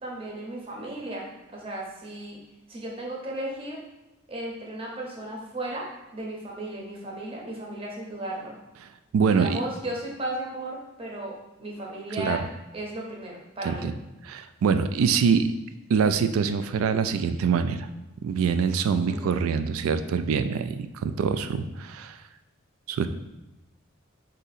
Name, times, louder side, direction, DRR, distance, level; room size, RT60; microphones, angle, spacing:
voice 1, 0.0-2.4 2.7-3.8 4.3-5.9 6.1-8.5 9.3-11.3 11.6-12.4 12.7-13.9 19.1-19.3, right 1 dB, 25° right, -2 dB, 0.7 m, -35 dB
voice 2, 9.1-9.6 12.2-12.4 13.6-13.9 14.2-15.5 15.9-17.9 18.2-22.2 22.9-23.1, right 6 dB, 90° right, 10 dB, 0.3 m, -24 dB
3.7 x 2.7 x 4.0 m, 0.99 s
head